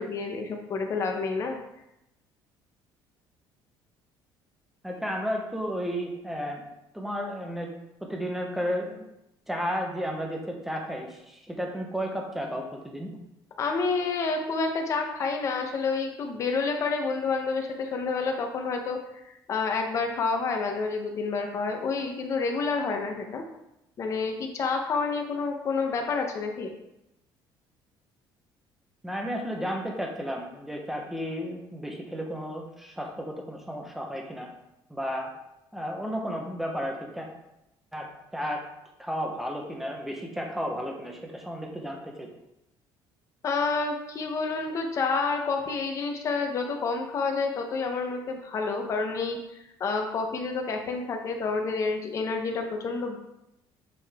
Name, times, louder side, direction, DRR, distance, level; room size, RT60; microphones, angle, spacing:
voice 1, 0.0-1.6 13.6-19.0 19.5-23.4 24.0-26.7 43.4-49.4 49.8-53.2, left 4 dB, 35° left, 3 dB, 1.0 m, -29 dB
voice 2, 4.8-6.6 6.9-7.7 8.1-9.0 9.5-13.1 29.0-34.5 34.9-35.3 35.7-37.3 37.9-38.1 38.3-38.6 39.0-42.3, equal, 5° right, 0 dB, 1.1 m, -33 dB
7.7 x 5.3 x 3.7 m, 0.87 s
cardioid pair, 170°, 9 cm